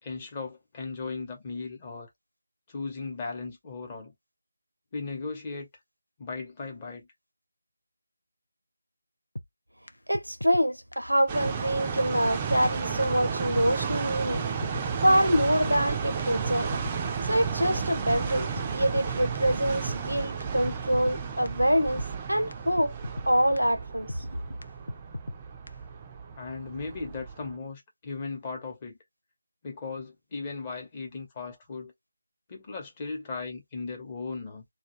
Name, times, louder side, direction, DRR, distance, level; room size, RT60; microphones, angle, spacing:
voice 1, 0.0-2.1 2.7-4.1 4.9-5.7 6.2-7.1 26.4-29.0 29.6-31.9 32.5-34.6, left 4 dB, 20° left, 0.8 m, -37 dB
sound 1, 9.4-9.5 9.9-10.0 10.1-10.7 10.9-11.0 11.5-11.6 12.0-12.1 12.2-12.8 13.0-13.1 13.6-13.7 14.1-14.2 14.4-14.9 15.1-15.2 15.7-15.8 16.2-17.0 17.2-17.3 17.8-17.9 18.3-18.4 18.6-19.1 19.4-19.5 19.9-20.0 20.4-20.5 20.7-21.2 21.5-21.6 22.0-22.1 22.5-22.6 22.8-23.3 23.6-23.7 24.1-24.2 24.6-24.7 24.9-25.4 25.7-25.8, left 1 dB, 70° left, 0.4 m, -37 dB
voice 2, 10.1-14.4 15.0-16.7 17.3-22.0 22.3-22.9 23.3-24.3, equal, 85° right, 0.5 m, -25 dB
sound 2, 11.3-27.5, right 6 dB, 20° right, 0.3 m, -33 dB
2.2 x 2.2 x 3.0 m
figure-of-eight pair, 160°, 0 cm